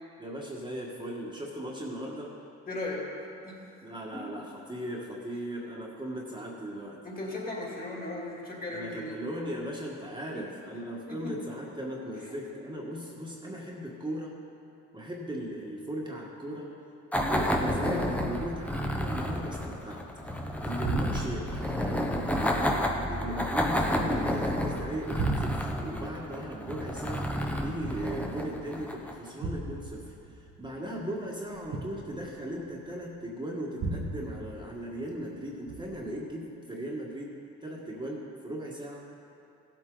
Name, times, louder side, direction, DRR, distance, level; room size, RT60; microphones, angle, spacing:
voice 1, 0.2-2.3 3.8-7.0 8.7-14.3 14.9-16.7 17.1-22.0 22.4-37.3 37.6-39.0, right 1 dB, 15° right, -3 dB, 1.7 m, -38 dB
voice 2, 2.7-3.1 3.4-3.9 4.1-4.2 7.0-9.2 10.3-10.5 11.1-11.4 12.3-12.4, left 2 dB, 30° left, -3 dB, 3.0 m, -37 dB
sound 1, 17.1-29.3, equal, 5° left, 0.9 m, -31 dB
sound 2, 17.5-19.8 20.0-20.5 20.8-24.5 24.9-28.6 29.4-33.0 33.8-35.3 35.7-36.2, right 3 dB, 70° right, 1.4 m, -39 dB
15.5 x 8.1 x 4.0 m, 2.7 s
cardioid pair, 90°, 30 cm